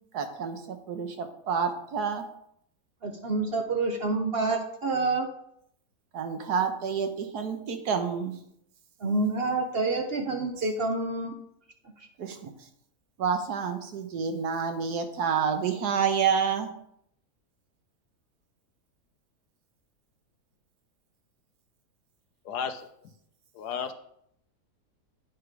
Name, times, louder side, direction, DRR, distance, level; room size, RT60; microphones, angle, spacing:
voice 1, 0.1-2.2 6.1-8.3 12.2-12.5 13.2-16.7, right 6 dB, 70° right, 6 dB, 1.5 m, -28 dB
voice 2, 3.0-5.3 9.0-11.3, right 3 dB, 50° right, 4 dB, 0.8 m, -28 dB
voice 3, 22.4-23.1 23.5-23.9, left 7 dB, 75° left, 9 dB, 1.3 m, -34 dB
9.4 x 4.8 x 5.0 m, 0.73 s
omnidirectional pair, 1.8 m